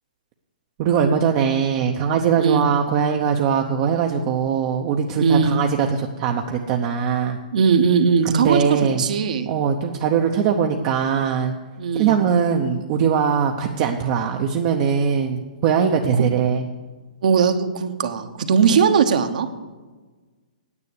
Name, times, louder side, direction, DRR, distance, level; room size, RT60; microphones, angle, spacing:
voice 1, 0.8-7.4 8.2-9.0 9.5-11.5 11.9-16.7, right 7 dB, 30° right, 2 dB, 0.7 m, -21 dB
voice 2, 5.2-5.6 7.5-9.5 11.8-12.2 16.2-16.3 17.2-19.5, right 6 dB, 60° right, 7 dB, 1.2 m, -19 dB
9.7 x 8.3 x 8.2 m, 1.3 s
hypercardioid pair, 165°, 5 cm